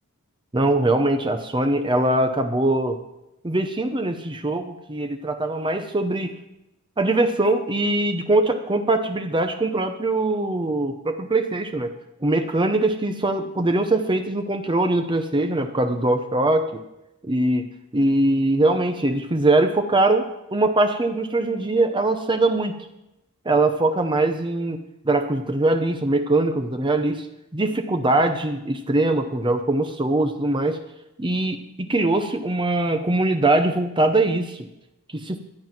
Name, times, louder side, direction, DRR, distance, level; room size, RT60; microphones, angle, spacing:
voice 1, 0.5-3.0 3.4-6.3 7.0-11.9 12.2-16.8 17.3-17.6 17.9-22.7 23.4-27.3 27.5-30.8 31.2-34.7 35.1-35.4, right 2 dB, 20° right, 6 dB, 0.8 m, -22 dB
13.0 x 9.4 x 6.0 m, 0.89 s
head